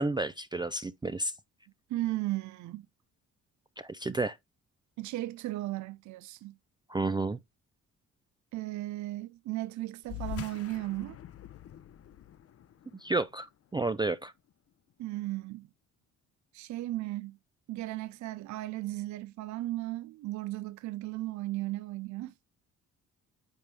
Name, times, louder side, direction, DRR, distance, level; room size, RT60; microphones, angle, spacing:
voice 1, 0.0-1.3 3.8-4.4 6.9-7.4 12.9-13.5 13.7-14.3, right 2 dB, 15° right, 0.4 m, -31 dB
voice 2, 1.9-2.9 5.0-6.6 8.5-11.2 15.0-15.7 16.5-17.4 17.7-22.3, right 17 dB, 70° right, 0.5 m, -36 dB
sound 1, 10.0-14.9, left 11 dB, 50° left, 0.6 m, -45 dB
9.0 x 3.6 x 3.3 m
cardioid pair, 90°, 30 cm